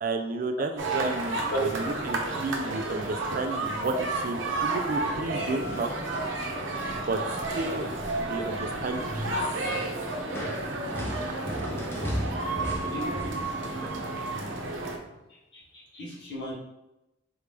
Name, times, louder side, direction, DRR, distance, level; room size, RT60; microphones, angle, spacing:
voice 1, 0.0-3.9 4.2-5.9 6.9-7.2 7.5-7.9 8.2-9.6 11.1-11.3, right 3 dB, 45° right, 6 dB, 0.4 m, -32 dB
sound 1, 0.8-15.0, right 2 dB, 85° right, 0.7 m, -31 dB
voice 2, 1.5-1.9 3.9-4.0 6.7-6.8 12.9-13.5 15.0-15.2 15.5-16.5, right 1 dB, 60° left, -5 dB, 1.3 m, -34 dB
sound 2, 5.1-6.3 6.7-7.1 7.3-13.9, equal, 10° left, 0.5 m, -37 dB
3.9 x 3.4 x 3.3 m, 0.91 s
head